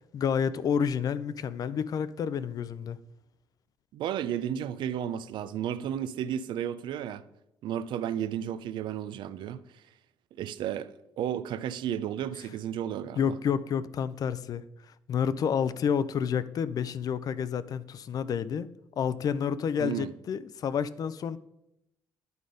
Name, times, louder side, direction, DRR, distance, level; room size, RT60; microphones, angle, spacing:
voice 1, 0.1-3.0 13.2-14.6 15.1-18.7 19.0-21.4, left 7 dB, 50° left, 0.4 m, -29 dB
voice 2, 3.9-7.2 7.6-9.6 10.4-13.3 19.8-20.1, right 10 dB, 75° right, 0.4 m, -33 dB
9.4 x 3.9 x 5.0 m
cardioid pair, 110°, 8 cm